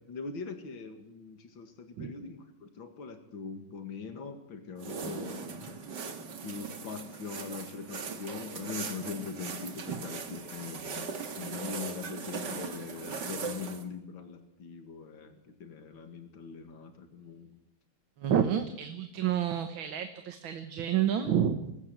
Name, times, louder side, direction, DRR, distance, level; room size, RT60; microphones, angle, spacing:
voice 1, 0.1-5.9 6.4-17.5, left 5 dB, 80° left, 7 dB, 2.8 m, -42 dB
sound 1, 4.8-13.8, right 5 dB, 65° right, 2.3 m, -39 dB
voice 2, 18.2-21.8, right 9 dB, 85° right, 8 dB, 2.1 m, -29 dB
24.5 x 15.0 x 9.2 m, 0.90 s
omnidirectional pair, 2.1 m